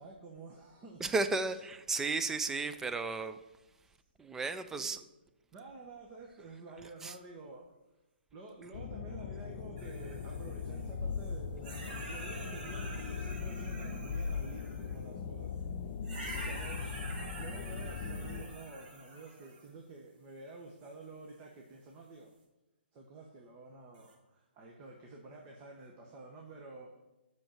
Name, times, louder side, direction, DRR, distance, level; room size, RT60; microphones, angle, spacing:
voice 1, 0.0-1.1 1.5-1.6 4.8-4.9 5.5-7.7 8.3-15.5 16.3-16.9 17.4-22.4 22.9-27.0, right 3 dB, 25° right, 1.3 m, -50 dB
voice 2, 1.0-3.4 4.2-5.0 7.0-7.2, right 3 dB, 5° right, 0.4 m, -34 dB
sound 1, 8.7-18.5, left 5 dB, 40° left, 0.9 m, -40 dB
sound 2, 9.8-11.3 11.6-15.0 16.0-19.7 20.8-20.9 23.9-24.1, right 2 dB, 45° right, 3.5 m, -47 dB
sound 3, 10.9-11.5 13.3-14.5 14.8-14.9, left 4 dB, 70° left, 0.6 m, -38 dB
7.7 x 6.4 x 7.3 m
hypercardioid pair, 145°, 6 cm